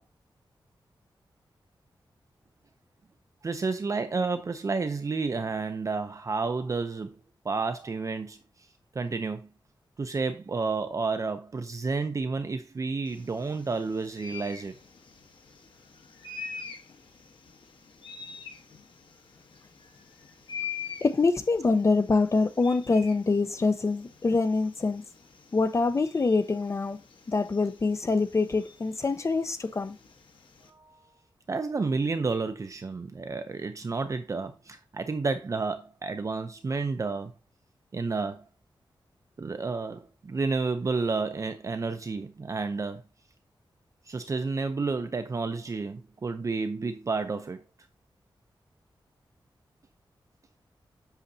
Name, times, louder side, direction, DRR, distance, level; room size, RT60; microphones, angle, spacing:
voice 1, 3.4-7.2 7.4-8.4 8.9-9.5 10.0-14.7 30.7-31.0 31.5-37.3 37.9-38.4 39.4-43.0 44.1-47.6, right 4 dB, 40° right, 0.6 m, -30 dB
sound 1, 13.0-30.7, left 6 dB, 80° left, 1.3 m, -45 dB
voice 2, 21.0-25.0 25.5-27.0 27.3-30.0, left 3 dB, 35° left, 0.7 m, -25 dB
8.3 x 6.4 x 2.8 m
wide cardioid pair, 130°, 9 cm